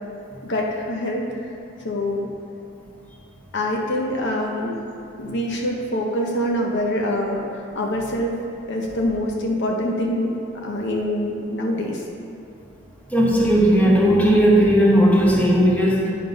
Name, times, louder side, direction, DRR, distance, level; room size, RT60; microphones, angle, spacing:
voice 1, 0.4-1.3 1.8-2.3 3.5-4.7 5.2-7.4 7.7-8.4 8.7-12.0, left 1 dB, 60° left, 0 dB, 0.7 m, -25 dB
voice 2, 13.1-16.1, equal, 10° left, -4 dB, 1.1 m, -16 dB
9.4 x 3.7 x 5.3 m, 2.7 s
head